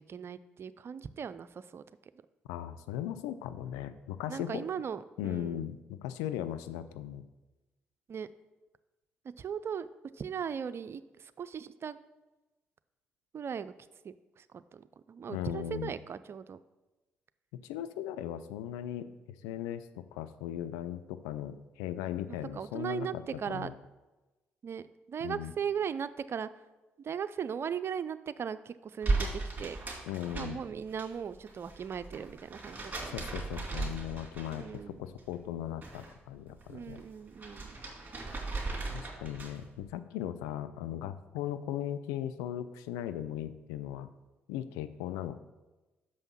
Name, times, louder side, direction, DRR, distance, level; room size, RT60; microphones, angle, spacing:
voice 1, 0.0-1.8 4.3-5.7 8.1-8.3 9.4-9.9 10.1-12.0 13.3-13.7 14.0-16.6 22.5-23.7 24.6-26.5 27.0-29.8 30.4-33.3 34.5-35.1 36.7-37.8, right 7 dB, 45° right, 14 dB, 0.4 m, -38 dB
voice 2, 2.5-4.6 5.2-7.2 15.3-15.9 17.6-23.7 25.2-25.5 30.1-30.6 33.0-37.0 38.9-44.1 44.5-45.4, left 11 dB, 75° left, 11 dB, 0.4 m, -38 dB
sound 1, 29.0-31.1 31.3-34.8 35.2-36.1 36.5-39.7, right 3 dB, 30° right, 3.1 m, -37 dB
6.4 x 5.5 x 6.1 m, 1.1 s
hypercardioid pair, 45°, 6 cm